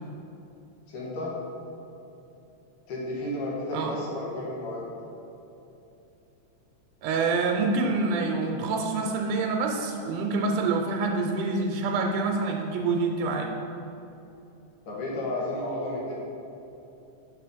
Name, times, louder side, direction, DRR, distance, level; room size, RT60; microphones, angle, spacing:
voice 1, 0.9-1.4 2.9-4.9 14.9-16.1, left 1 dB, 90° left, -5 dB, 2.8 m, -32 dB
voice 2, 7.0-13.5, right 3 dB, 85° right, 2 dB, 2.1 m, -26 dB
6.4 x 4.1 x 5.0 m, 2.9 s
omnidirectional pair, 3.5 m